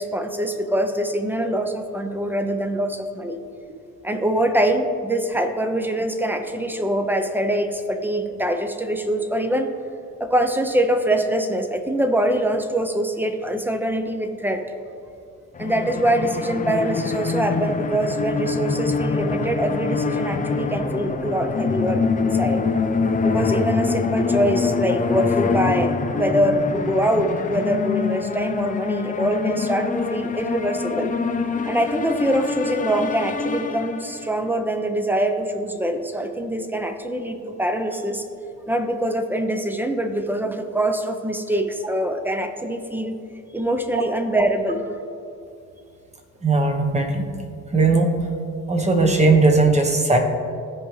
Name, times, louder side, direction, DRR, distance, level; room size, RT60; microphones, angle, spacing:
voice 1, 0.0-3.4 4.0-9.7 10.2-14.6 15.6-22.6 23.2-31.1 31.7-38.2 38.7-43.2 43.5-44.9, right 1 dB, 5° right, 6 dB, 0.7 m, -24 dB
sound 1, 15.6-34.3, left 4 dB, 25° left, 0.5 m, -25 dB
voice 2, 46.4-47.3 47.7-48.1 48.7-50.2, right 3 dB, 20° right, 3 dB, 1.1 m, -18 dB
14.5 x 5.0 x 3.3 m, 2.5 s
cardioid pair, 90°, 30 cm